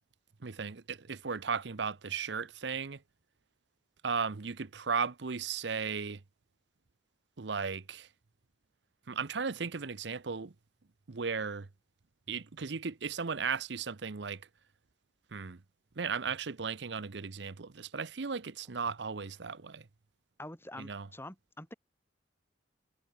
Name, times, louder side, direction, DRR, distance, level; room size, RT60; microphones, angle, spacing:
voice 1, 0.4-3.0 4.0-6.2 7.4-8.1 9.1-10.5 11.1-11.7 12.3-14.5 15.3-15.6 16.0-19.9 20.8-21.1, right 5 dB, 65° right, 0.8 m, -36 dB
voice 2, 20.4-21.7, left 1 dB, 15° left, 6.4 m, -46 dB
head